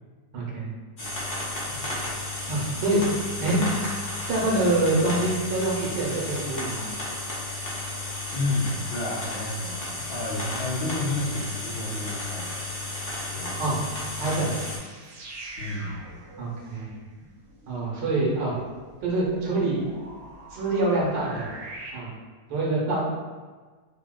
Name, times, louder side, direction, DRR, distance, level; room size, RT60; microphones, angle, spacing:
voice 1, 0.3-0.7 2.5-3.0 3.4-3.8 4.3-6.9 13.6-13.8 14.2-14.5 16.4-16.9 17.7-18.5 19.0-19.8 20.5-21.5 21.9-22.1 22.5-23.0, right 2 dB, 90° right, -4 dB, 1.4 m, -25 dB
sound 1, 1.0-14.8, left 2 dB, 50° left, 0.7 m, -33 dB
voice 2, 1.6-2.0 8.3-12.7 13.3-13.6 15.6-16.0, left 2 dB, 75° left, -5 dB, 1.3 m, -31 dB
sound 2, 14.6-21.9, right 2 dB, 75° right, 1.1 m, -44 dB
3.6 x 2.0 x 2.2 m, 1.4 s
omnidirectional pair, 1.9 m